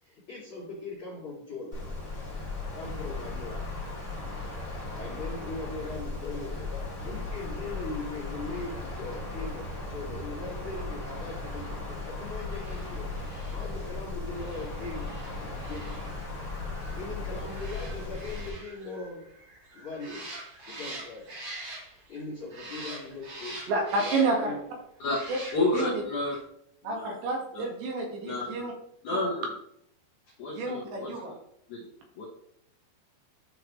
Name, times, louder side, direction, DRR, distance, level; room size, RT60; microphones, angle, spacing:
voice 1, 0.0-1.8 2.7-3.6 5.0-13.1 13.5-15.1 15.4-15.9 17.0-19.3 19.7-20.4 20.6-21.3 21.9-23.6 24.0-24.6 25.6-25.7, left 3 dB, 35° left, -9 dB, 2.2 m, -40 dB
Wind, 1.7-18.5, left 2 dB, 10° left, 1.8 m, -37 dB
sound 1, 12.5-22.2 22.5-24.5 25.0-25.9 26.2-26.4, right 2 dB, 45° right, 1.9 m, -44 dB
voice 2, 23.7-24.6 25.3-25.4 25.7-26.0 26.8-28.7 29.1-29.3 30.5-31.4, right 3 dB, 75° right, 1 dB, 3.9 m, -30 dB
voice 3, 25.5-26.4 26.8-27.1 27.6-27.7 28.3-28.5 29.0-29.5 30.4-31.1 31.7-31.8 32.2-32.3, left 2 dB, 75° left, -4 dB, 1.8 m, -29 dB
12.5 x 4.8 x 3.1 m, 0.74 s
omnidirectional pair, 5.3 m